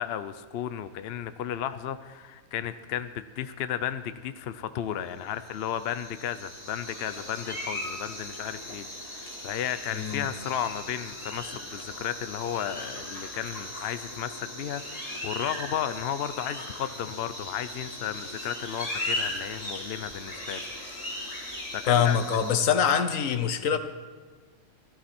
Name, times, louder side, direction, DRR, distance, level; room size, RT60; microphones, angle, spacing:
voice 1, 0.0-20.6 21.0-22.2, left 10 dB, 60° left, 11 dB, 0.8 m, -34 dB
sound 1, 5.3-22.6, left 1 dB, 25° left, 3.0 m, -38 dB
voice 2, 9.9-10.3 21.9-23.8, left 7 dB, 80° left, 10 dB, 1.3 m, -24 dB
16.0 x 14.0 x 4.4 m, 1.4 s
omnidirectional pair, 1.4 m